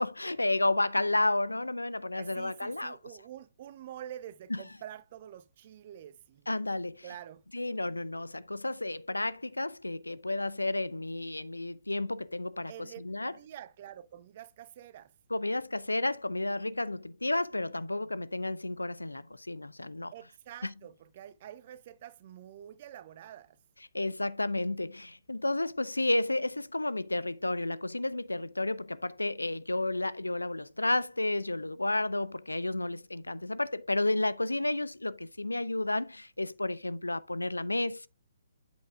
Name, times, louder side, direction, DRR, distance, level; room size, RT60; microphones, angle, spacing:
voice 1, 0.0-3.0 4.5-4.6 6.5-7.0 7.5-13.3 15.3-20.1 20.6-20.7 23.9-38.1, left 2 dB, 85° left, 0.5 m, -31 dB
voice 2, 2.2-6.5 7.0-7.4 12.7-15.1 20.1-23.6, right 11 dB, 40° right, 0.8 m, -47 dB
8.5 x 7.1 x 2.4 m
figure-of-eight pair, 130°, 0 cm